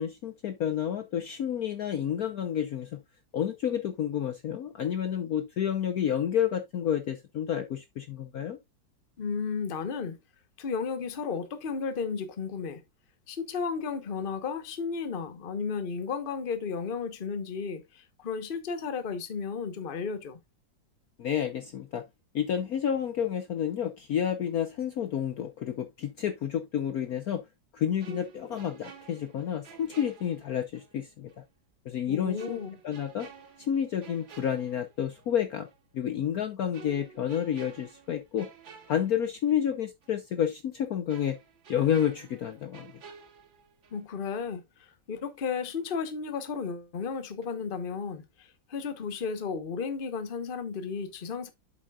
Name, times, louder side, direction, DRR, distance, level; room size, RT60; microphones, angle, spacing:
voice 1, 0.0-3.0 3.3-8.6 21.2-22.0 22.3-27.4 27.7-31.3 31.9-32.6 32.8-33.3 33.6-35.7 35.9-38.5 38.9-41.4 41.7-42.9, left 9 dB, 60° left, 1.1 m, -30 dB
voice 2, 9.2-10.2 10.6-12.8 13.3-20.4 32.1-32.8 43.9-44.6 45.1-51.5, left 5 dB, 35° left, 1.0 m, -33 dB
sound 1, 28.0-31.0 31.3-31.4 32.4-35.3 35.7-35.9 36.7-39.7 40.0-40.2 41.1-44.1 44.4-44.6, right 6 dB, 75° right, 3.6 m, -51 dB
8.1 x 7.7 x 2.4 m
omnidirectional pair, 2.1 m